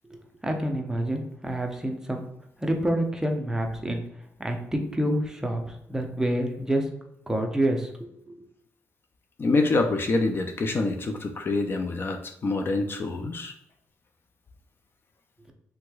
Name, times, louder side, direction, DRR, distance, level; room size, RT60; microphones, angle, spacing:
voice 1, 0.1-2.3 2.6-4.0 4.4-6.8 7.3-7.9 8.3-8.4, right 1 dB, 10° right, 3 dB, 0.6 m, -27 dB
voice 2, 9.4-13.5, left 3 dB, 40° left, 4 dB, 0.4 m, -26 dB
3.4 x 3.0 x 2.3 m, 0.78 s
cardioid pair, 100°, 6 cm